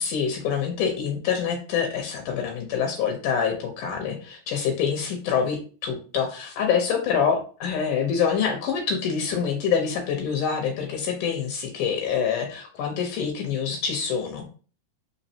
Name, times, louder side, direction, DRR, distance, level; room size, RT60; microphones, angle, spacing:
voice 1, 0.0-14.4, left 7 dB, 80° left, 3 dB, 2.4 m, -26 dB
5.2 x 3.6 x 2.7 m, 0.38 s
omnidirectional pair, 3.6 m